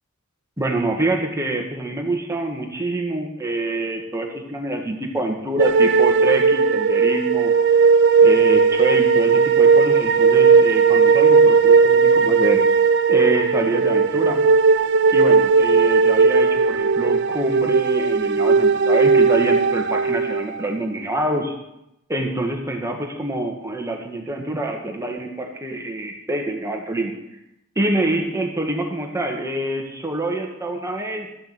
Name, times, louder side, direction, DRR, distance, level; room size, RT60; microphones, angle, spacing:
voice 1, 0.6-7.5 8.2-12.7 13.1-14.4 15.1-21.5 22.1-27.1 27.7-31.3, right 2 dB, 15° right, 2 dB, 1.4 m, -26 dB
sound 1, 5.6-20.7, right 5 dB, 50° right, 0.5 m, -16 dB
13.5 x 6.8 x 8.0 m, 0.86 s
head